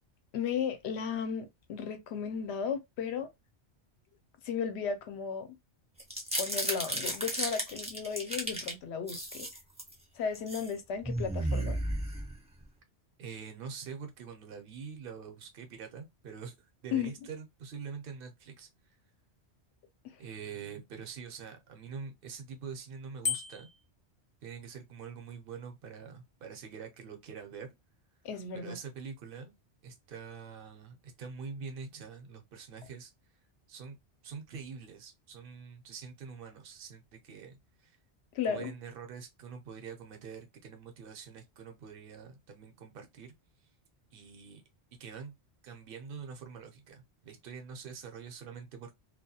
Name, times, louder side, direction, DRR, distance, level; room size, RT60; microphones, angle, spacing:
voice 1, 0.3-3.3 4.4-5.5 6.4-9.5 10.2-11.8 16.9-17.1 20.0-20.2 28.2-28.8 38.3-38.7, left 7 dB, 80° left, 0.9 m, -35 dB
sound 1, 6.0-8.7 9.1-9.9 10.3-10.7 11.0-12.6, right 1 dB, 10° right, 0.4 m, -34 dB
voice 2, 13.2-16.5 16.8-18.7 20.2-23.7 24.4-27.7 28.5-29.5 29.8-33.1 33.7-34.0 34.2-38.0 38.4-43.3 44.1-44.6 44.9-45.3 45.6-49.0, right 6 dB, 60° right, 0.8 m, -45 dB
Bicycle bell, 23.2-23.9, left 6 dB, 50° left, 0.6 m, -33 dB
2.3 x 2.2 x 2.7 m
omnidirectional pair, 1.1 m